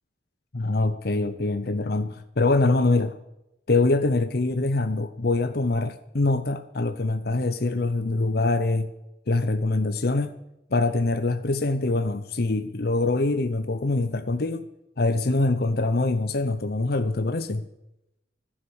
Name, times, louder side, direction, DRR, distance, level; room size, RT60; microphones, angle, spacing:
voice 1, 0.5-3.1 3.7-8.9 9.3-10.3 10.7-14.7 15.0-17.7, left 2 dB, 55° left, 10 dB, 0.8 m, -24 dB
14.5 x 12.0 x 7.2 m, 0.90 s
head